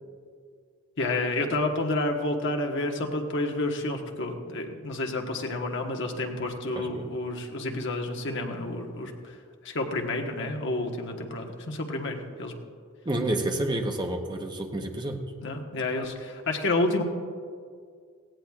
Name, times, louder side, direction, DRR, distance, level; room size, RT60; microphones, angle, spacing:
voice 1, 1.0-9.1 9.6-12.5 15.4-17.0, left 2 dB, 60° left, 2 dB, 1.2 m, -29 dB
voice 2, 6.7-7.1 13.0-15.2, right 1 dB, 20° right, 3 dB, 0.9 m, -29 dB
18.0 x 16.0 x 2.4 m, 2.1 s
head